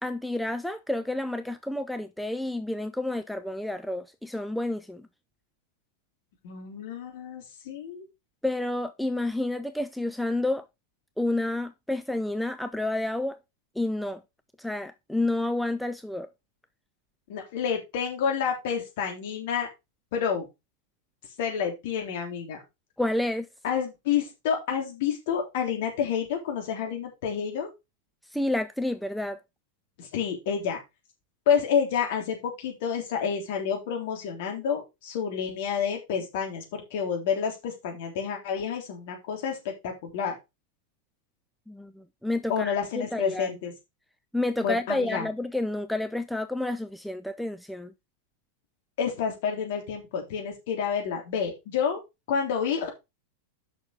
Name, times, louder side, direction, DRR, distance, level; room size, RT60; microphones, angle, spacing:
voice 1, 0.0-5.1 8.4-10.6 11.2-13.4 13.8-14.2 14.6-16.3 23.0-23.5 28.3-29.4 41.7-43.5 44.3-47.9, left 1 dB, ahead, 0.5 m, -30 dB
voice 2, 6.4-8.0 17.3-19.7 20.1-20.5 21.4-22.6 23.6-27.7 30.0-30.8 31.4-40.3 42.5-43.7 44.6-45.3 49.0-52.0 52.3-52.9, left 7 dB, 50° left, 3.5 m, -29 dB
6.9 x 6.0 x 4.9 m
figure-of-eight pair, 90°, 0 cm